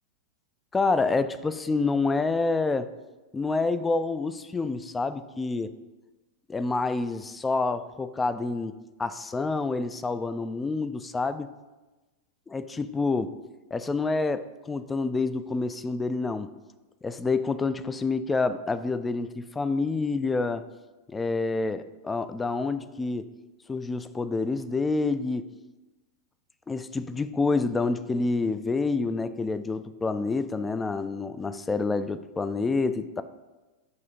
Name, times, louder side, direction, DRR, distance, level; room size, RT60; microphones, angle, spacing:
voice 1, 0.7-2.9 3.3-5.7 6.5-11.5 12.5-13.4 13.7-16.5 17.0-20.7 21.1-23.3 23.7-25.5 26.7-33.2, left 3 dB, 15° left, 12 dB, 0.3 m, -28 dB
7.9 x 2.8 x 5.1 m, 1.1 s
figure-of-eight pair, 90°, 0 cm